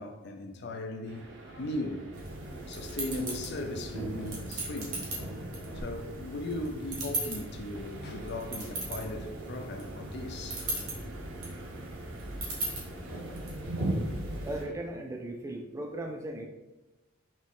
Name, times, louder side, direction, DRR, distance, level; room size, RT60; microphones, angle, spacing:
voice 1, 0.0-2.3 2.7-5.3 5.7-10.6 14.3-14.5, left 1 dB, 50° left, 0.5 m, -38 dB
sound 1, 1.0-14.7, right 1 dB, 55° right, 0.6 m, -46 dB
sound 2, 2.1-14.6, right 1 dB, 85° right, 1.3 m, -37 dB
voice 2, 14.4-16.4, right 1 dB, 15° right, 0.3 m, -37 dB
4.3 x 3.0 x 3.6 m
head